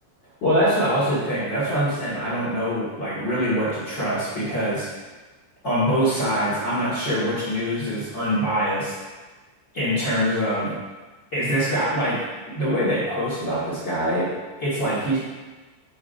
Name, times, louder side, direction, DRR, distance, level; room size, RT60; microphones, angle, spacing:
voice 1, 0.4-4.9 5.6-8.9 9.7-10.7 11.3-12.2 12.5-15.2, equal, 60° left, -9 dB, 1.2 m, -24 dB
8.4 x 5.0 x 2.7 m, 1.2 s
omnidirectional pair, 5.3 m